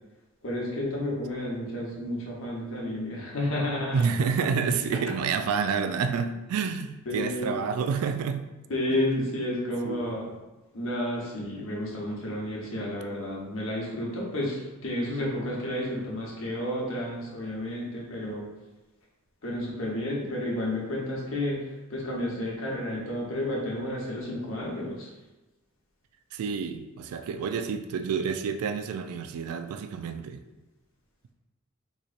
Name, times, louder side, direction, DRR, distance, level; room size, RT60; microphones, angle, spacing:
voice 1, 0.4-4.0 7.1-7.5 8.7-10.2 10.7-18.5 19.4-21.6 21.9-25.1, left 1 dB, 65° left, -3 dB, 1.0 m, -31 dB
voice 2, 3.9-8.5 8.9-9.0 9.8-10.4 26.3-30.4, right 6 dB, 90° right, 13 dB, 0.3 m, -29 dB
3.9 x 3.0 x 2.4 m, 1.1 s
head